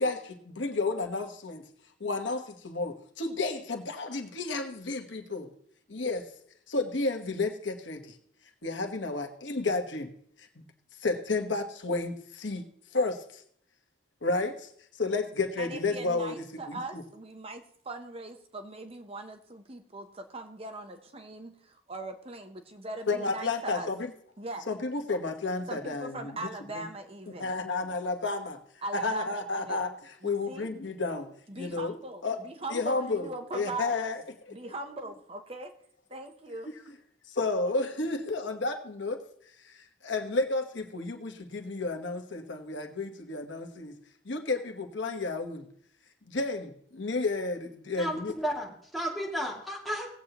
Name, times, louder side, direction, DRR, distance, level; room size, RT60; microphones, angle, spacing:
voice 1, 0.0-1.6 2.0-5.5 5.9-6.3 6.7-8.2 8.6-10.1 10.4-10.5 11.0-13.4 14.2-17.0 23.1-24.1 24.7-26.9 27.4-28.6 28.9-31.9 32.2-32.4 32.7-34.6 36.6-36.9 37.3-39.2 39.6-43.9 44.2-45.7 46.3-48.3, left 3 dB, 85° left, 4 dB, 1.3 m, -32 dB
voice 2, 15.6-23.9 24.4-24.7 25.7-27.5 28.8-29.8 30.2-30.7 31.5-34.0 34.5-35.7 36.1-36.7, right 2 dB, 30° right, 6 dB, 0.8 m, -40 dB
voice 3, 48.0-50.1, equal, ahead, -5 dB, 2.4 m, -33 dB
19.0 x 8.0 x 3.0 m, 0.63 s
head